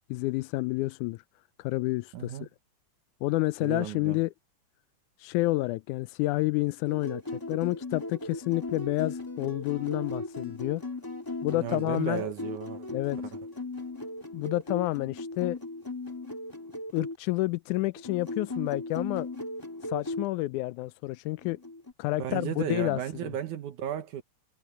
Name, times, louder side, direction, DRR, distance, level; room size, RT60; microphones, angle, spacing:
voice 1, 0.1-1.2 1.6-2.5 3.2-4.3 5.2-10.8 11.4-12.2 12.9-13.2 14.3-15.6 16.9-19.3 19.9-21.6 22.0-23.3, left 20 dB, 85° left, 2.0 m, -29 dB
voice 2, 2.1-2.5 3.6-4.2 11.5-12.9 22.2-24.2, right 10 dB, 80° right, 2.7 m, -34 dB
sound 1, 6.9-17.2 18.0-20.3 21.4-21.9, left 2 dB, 10° left, 1.5 m, -37 dB
omnidirectional pair, 3.5 m